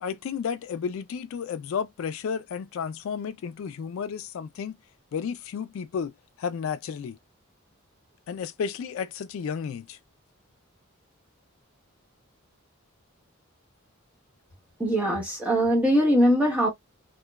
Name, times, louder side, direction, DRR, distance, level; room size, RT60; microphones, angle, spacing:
voice 1, 0.0-4.8 5.1-6.1 6.4-7.2 8.3-10.0, left 6 dB, 65° left, 0.3 m, -32 dB
voice 2, 14.8-16.7, equal, 5° right, 1.0 m, -21 dB
2.9 x 2.2 x 2.2 m
head